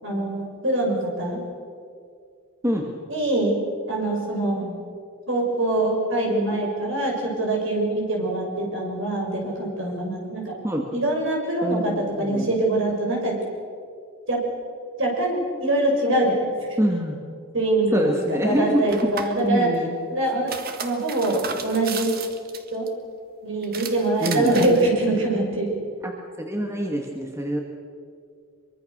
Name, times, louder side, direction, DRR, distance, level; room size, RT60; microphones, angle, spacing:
voice 1, 0.0-1.4 3.1-3.5 3.9-4.8 5.3-10.6 10.9-13.4 14.3-14.4 15.0-16.5 17.5-19.7 20.1-20.5 20.8-22.2 22.7-22.8 23.4-25.8, right 2 dB, 60° right, 0 dB, 6.3 m, -24 dB
voice 2, 2.6-3.0 10.6-10.9 11.6-12.5 16.8-17.2 17.9-19.1 19.4-20.0 24.2-24.6 26.0-27.6, equal, 10° right, 2 dB, 1.6 m, -25 dB
sound 1, 18.9-19.4 20.3-22.9 23.6-24.9, right 6 dB, 45° right, 1.6 m, -34 dB
24.0 x 23.5 x 6.6 m, 2.3 s
head